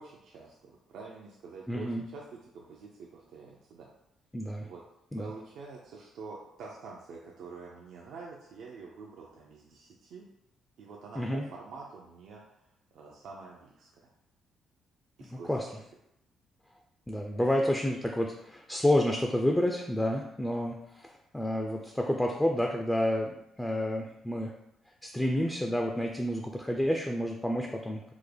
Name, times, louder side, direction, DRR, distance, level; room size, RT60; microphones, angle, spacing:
voice 1, 0.0-3.9 4.6-4.8 5.2-10.3 10.8-14.0 15.2-15.8 17.4-17.6, right 4 dB, 75° right, -3 dB, 0.5 m, -47 dB
voice 2, 1.7-2.0 4.3-4.7 5.1-5.3 11.2-11.4 15.3-15.7 17.1-24.5 25.0-28.0, left 1 dB, 10° left, 2 dB, 0.3 m, -29 dB
3.5 x 2.1 x 3.3 m, 0.82 s
cardioid pair, 90°, 0 cm